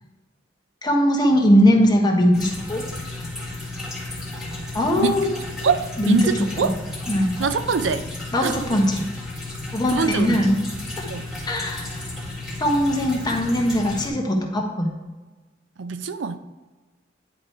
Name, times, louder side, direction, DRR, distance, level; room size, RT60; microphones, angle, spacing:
voice 1, 0.8-2.8 4.7-5.3 6.0-6.3 6.6-6.7 7.1-7.3 8.3-9.0 9.7-10.6 11.0-11.1 11.5-12.0 12.6-14.9, equal, 20° left, 1 dB, 1.2 m, -20 dB
sound 1, 2.3-14.1, left 2 dB, 5° right, 2.0 m, -33 dB
voice 2, 5.6-6.7 7.4-8.0 8.4-8.5 9.9-10.5 11.1-11.3 15.8-16.4, right 5 dB, 75° right, 11 dB, 0.5 m, -24 dB
9.8 x 4.5 x 4.6 m, 1.2 s
head